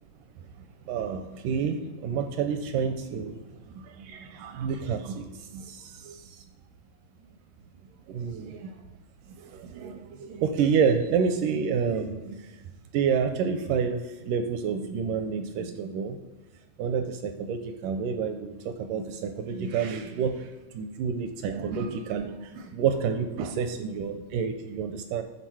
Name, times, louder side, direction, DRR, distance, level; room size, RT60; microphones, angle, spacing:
voice 1, 0.9-3.4 3.8-6.2 8.1-8.7 9.4-12.4 12.9-16.2 16.8-20.5 20.7-25.2, right 6 dB, 80° right, 7 dB, 1.9 m, -29 dB
11.0 x 3.9 x 4.6 m, 1.2 s
omnidirectional pair, 4.2 m